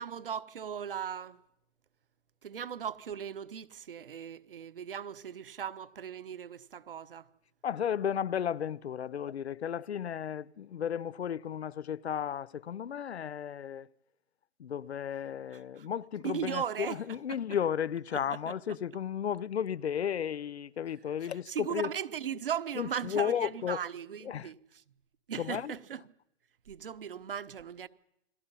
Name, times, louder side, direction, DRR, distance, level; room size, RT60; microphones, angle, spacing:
voice 1, 0.0-1.4 2.4-7.3 15.8-15.9 16.2-17.4 18.1-18.6 21.2-24.6 25.3-26.0 26.7-27.9, right 8 dB, 50° right, 1.2 m, -38 dB
voice 2, 7.6-13.9 14.6-21.9 22.8-23.8 24.2-24.5 25.3-25.7, left 8 dB, 70° left, 0.7 m, -34 dB
29.0 x 21.0 x 5.7 m
hypercardioid pair, 165°, 34 cm